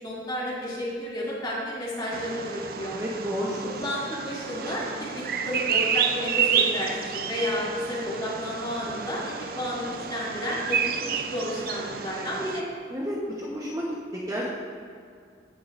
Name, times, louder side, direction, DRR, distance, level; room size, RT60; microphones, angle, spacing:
voice 1, 0.0-3.0 3.6-12.6, equal, 25° left, -7 dB, 2.5 m, -32 dB
Bird vocalization bird call bird song, 2.1-12.6, right 7 dB, 50° right, 0.5 m, -30 dB
voice 2, 2.9-3.8 12.9-14.5, equal, 20° right, -5 dB, 1.0 m, -31 dB
16.5 x 6.8 x 2.6 m, 2.3 s
head